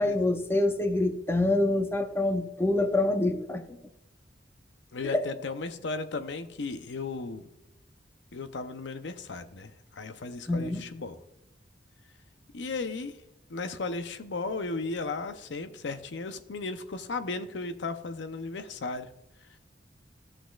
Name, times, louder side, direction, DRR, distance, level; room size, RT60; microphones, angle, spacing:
voice 1, 0.0-3.6 5.0-5.3 10.5-10.8, left 2 dB, 15° left, 6 dB, 0.7 m, -26 dB
voice 2, 4.9-7.4 8.3-11.2 12.5-13.2 13.5-19.1, left 3 dB, 75° left, 9 dB, 0.6 m, -35 dB
15.0 x 6.3 x 2.3 m, 0.82 s
head